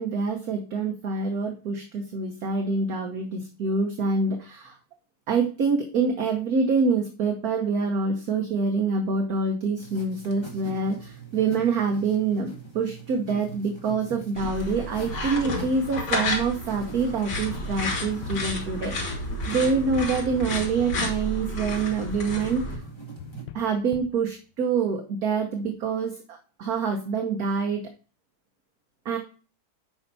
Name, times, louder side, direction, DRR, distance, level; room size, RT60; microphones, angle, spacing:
voice 1, 0.0-4.8 5.3-22.8 23.5-27.9 29.0-29.2, right 4 dB, 55° right, 4 dB, 1.4 m, -26 dB
sound 1, 9.8-23.5, right 5 dB, 15° left, 1.8 m, -43 dB
sound 2, 14.4-22.8, left 1 dB, 70° left, 3.2 m, -31 dB
sound 3, 15.1-17.0 17.3-21.8 22.3-24.2, left 9 dB, 85° left, 0.8 m, -42 dB
9.0 x 5.6 x 4.1 m, 0.36 s
omnidirectional pair, 2.2 m